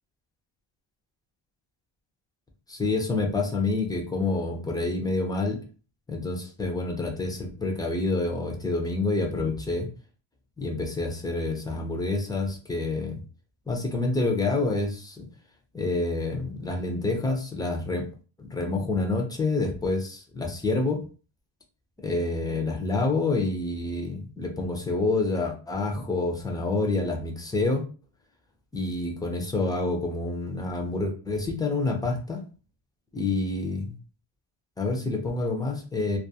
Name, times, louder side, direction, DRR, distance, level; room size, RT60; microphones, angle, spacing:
voice 1, 2.7-5.6 6.1-9.9 10.6-13.2 13.7-15.3 15.7-18.1 18.4-21.0 22.0-27.8 28.7-32.4 33.1-33.9 34.8-36.2, left 3 dB, 10° left, 3 dB, 0.4 m, -28 dB
2.3 x 2.3 x 2.7 m, 0.36 s
cardioid pair, 135°, 47 cm